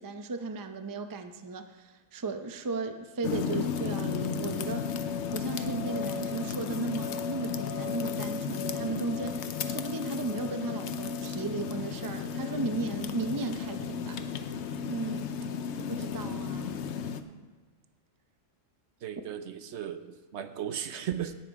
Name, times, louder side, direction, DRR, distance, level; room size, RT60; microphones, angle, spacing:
voice 1, 0.0-14.2 14.9-15.3 15.8-16.9, right 3 dB, 30° right, 7 dB, 0.4 m, -36 dB
sound 1, 3.2-17.2, left 6 dB, 65° left, 0.9 m, -34 dB
voice 2, 19.0-21.3, right 9 dB, 65° right, 10 dB, 0.9 m, -36 dB
17.0 x 5.7 x 4.7 m, 1.4 s
omnidirectional pair, 1.3 m